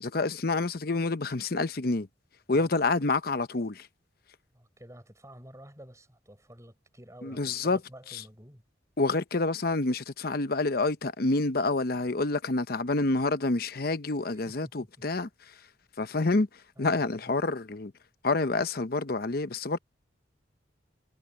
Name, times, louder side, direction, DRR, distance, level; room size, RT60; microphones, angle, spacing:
voice 1, 0.0-2.1 2.5-3.9 7.2-7.8 8.1-8.2 9.0-15.5 16.0-16.5 16.8-17.9 18.2-19.8, left 3 dB, 55° left, 0.8 m, -28 dB
voice 2, 4.5-8.6 14.4-14.9 16.8-17.3, right 1 dB, 15° right, 6.5 m, -50 dB
head